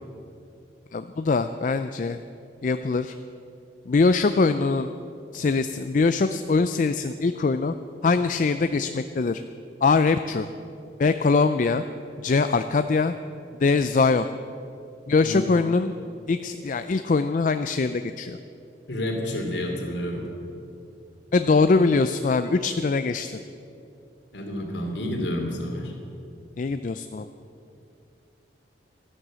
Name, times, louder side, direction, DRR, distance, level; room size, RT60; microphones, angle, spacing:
voice 1, 0.9-2.2 2.6-3.1 3.9-4.9 5.3-7.7 8.0-9.4 9.8-10.5 11.0-11.8 12.2-13.1 13.6-14.3 15.1-15.9 16.3-18.4 21.3-23.4 26.6-27.3, left 4 dB, 45° left, 10 dB, 0.4 m, -22 dB
voice 2, 18.9-20.3 24.3-25.9, left 1 dB, 75° left, 2 dB, 2.7 m, -29 dB
13.5 x 11.0 x 7.5 m, 2.6 s
head